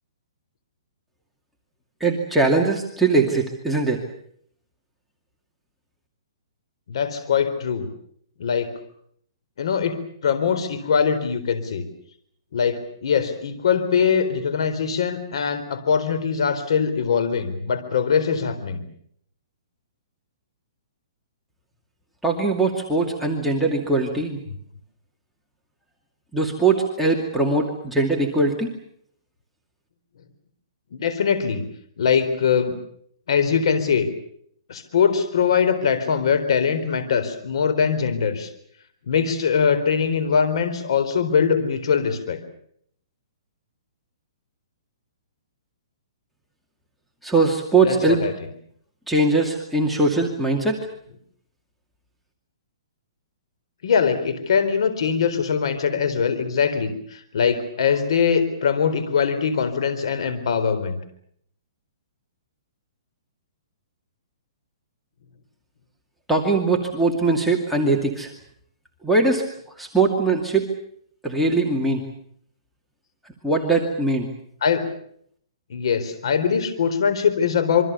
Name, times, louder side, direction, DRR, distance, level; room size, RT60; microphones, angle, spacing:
voice 1, 2.0-4.0 22.2-24.4 26.3-28.7 47.2-48.2 49.1-50.8 66.3-68.3 69.0-69.4 69.8-70.7 71.2-72.0 73.4-74.3, right 3 dB, ahead, -2 dB, 2.4 m, -21 dB
voice 2, 6.9-7.9 8.4-8.7 9.6-11.9 12.5-18.9 30.9-31.7 32.0-32.8 33.3-34.1 34.7-38.5 39.1-42.4 47.8-48.5 53.8-61.0 74.6-74.9 75.7-77.8, left 6 dB, 65° left, 11 dB, 4.1 m, -22 dB
27.0 x 24.0 x 7.0 m, 0.65 s
hypercardioid pair, 155°, 3 cm